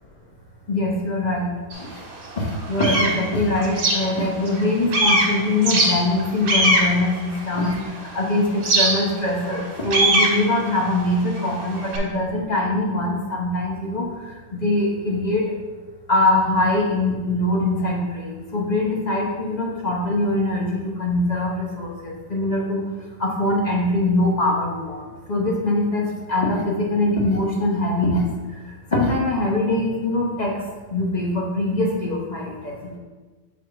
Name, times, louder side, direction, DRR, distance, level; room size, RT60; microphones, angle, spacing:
voice 1, 0.7-1.5 1.8-2.0 2.4-15.4 16.1-22.8 23.2-30.6 30.9-33.0, left 2 dB, 35° left, -3 dB, 0.6 m, -23 dB
sound 1, 1.7-1.8 2.3-4.6 4.9-8.0 8.6-12.0, right 1 dB, 75° right, 1.9 m, -21 dB
6.1 x 3.5 x 4.6 m, 1.3 s
omnidirectional pair, 2.2 m